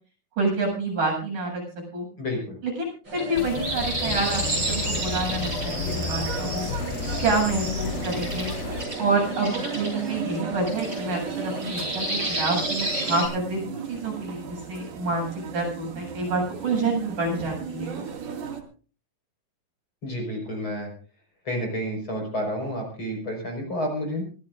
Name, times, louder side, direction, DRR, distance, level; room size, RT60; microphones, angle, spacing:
voice 1, 0.4-1.6 1.9-2.1 2.6-6.7 7.2-8.5 9.0-18.0, right 2 dB, 60° right, 0 dB, 9.3 m, -28 dB
voice 2, 2.2-2.6 20.0-20.9 21.5-24.2, equal, 35° left, 1 dB, 5.9 m, -30 dB
sound 1, 3.1-13.3, right 1 dB, 30° right, 8.3 m, -31 dB
sound 2, 3.3-8.8, left 7 dB, 75° left, 2.5 m, -33 dB
sound 3, 4.0-18.6, right 6 dB, 90° right, 4.3 m, -36 dB
25.0 x 16.5 x 2.6 m, 0.38 s
omnidirectional pair, 4.2 m